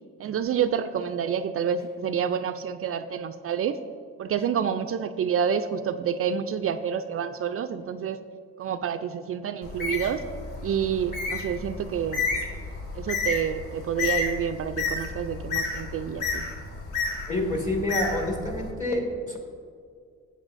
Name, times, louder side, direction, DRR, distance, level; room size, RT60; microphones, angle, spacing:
voice 1, 0.2-3.8 4.2-8.2 8.6-10.2 10.6-12.2 12.9-16.5, right 8 dB, 50° right, 10 dB, 0.4 m, -28 dB
Bird, 9.6-18.7, left 4 dB, 80° left, 1.5 m, -31 dB
voice 2, 17.3-19.4, left 1 dB, 25° left, 0 dB, 1.9 m, -28 dB
14.0 x 8.1 x 2.6 m, 2.2 s
cardioid pair, 90°, 30 cm